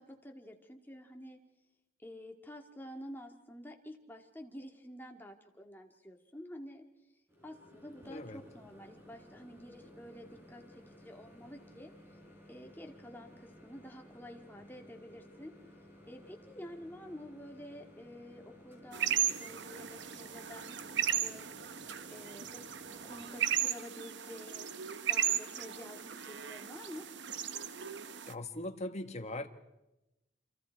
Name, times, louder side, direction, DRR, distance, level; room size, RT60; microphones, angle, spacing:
voice 1, 0.0-1.4 2.0-6.8 7.4-11.9 12.5-15.5 16.1-22.7 23.0-27.1, equal, 10° left, 3 dB, 2.1 m, -49 dB
Microwave oven, 7.3-23.6, left 1 dB, 15° right, 5.6 m, -57 dB
voice 2, 8.1-8.4 28.2-29.5, left 1 dB, 35° left, 6 dB, 1.6 m, -40 dB
sound 1, 18.9-28.3, right 9 dB, 65° right, 0.9 m, -36 dB
28.5 x 27.0 x 4.7 m, 0.97 s
head